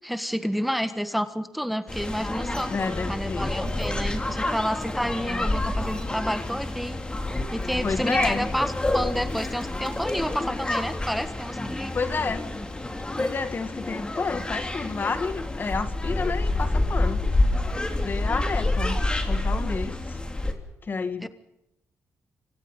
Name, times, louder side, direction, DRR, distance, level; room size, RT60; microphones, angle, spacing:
voice 1, 0.1-2.7 3.1-7.0 7.5-11.9 21.2-21.3, equal, ahead, 10 dB, 1.4 m, -30 dB
sound 1, 1.9-20.5, left 2 dB, 20° left, 3.4 m, -28 dB
voice 2, 2.7-3.5 5.2-5.5 7.8-8.5 11.9-12.5 13.1-17.2 18.0-20.2 20.8-21.3, left 4 dB, 40° left, 10 dB, 1.7 m, -30 dB
27.5 x 25.0 x 5.6 m, 0.88 s
cardioid pair, 85°, 5 cm